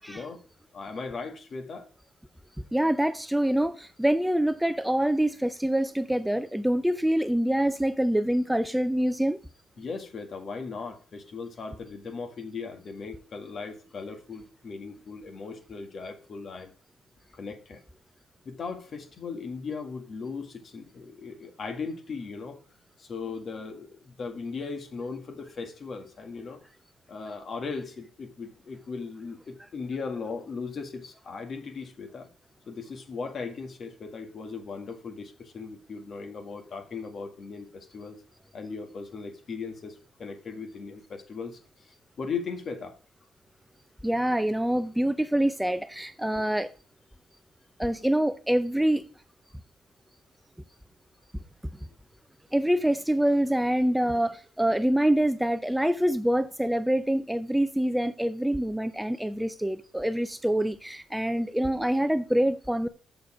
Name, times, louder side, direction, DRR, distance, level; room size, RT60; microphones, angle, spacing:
voice 1, 0.1-0.4 0.7-1.9 9.8-16.7 17.3-17.8 18.5-22.6 23.0-26.6 27.1-32.3 32.7-38.2 38.5-43.0, left 4 dB, 50° left, 1.8 m, -38 dB
voice 2, 2.7-9.4 44.0-46.7 47.8-49.0 52.5-62.9, right 1 dB, 5° right, 0.5 m, -25 dB
6.9 x 6.6 x 5.9 m
cardioid pair, 90°, 0 cm